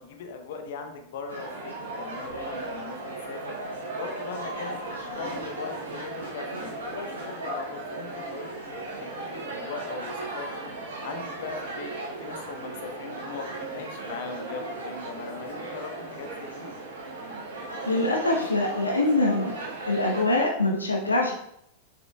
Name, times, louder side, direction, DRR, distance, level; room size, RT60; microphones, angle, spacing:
voice 1, 0.0-10.7 11.0-11.9 12.2-16.7, left 4 dB, 55° left, 4 dB, 1.0 m, -39 dB
sound 1, 1.3-20.2, right 2 dB, 70° right, 1.6 m, -36 dB
voice 2, 17.9-19.5 19.9-21.3, left 2 dB, 80° left, 0 dB, 0.8 m, -24 dB
6.6 x 6.4 x 2.3 m, 0.77 s
figure-of-eight pair, 90°, 0 cm